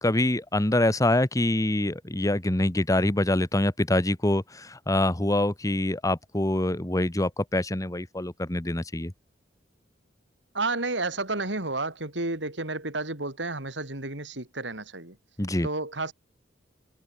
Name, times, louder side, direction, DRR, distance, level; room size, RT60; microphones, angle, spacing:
voice 1, 0.0-9.1 15.4-15.7, left 1 dB, 20° left, 1.2 m, -25 dB
voice 2, 10.5-15.2 15.6-16.1, right 2 dB, 75° right, 5.4 m, -31 dB
head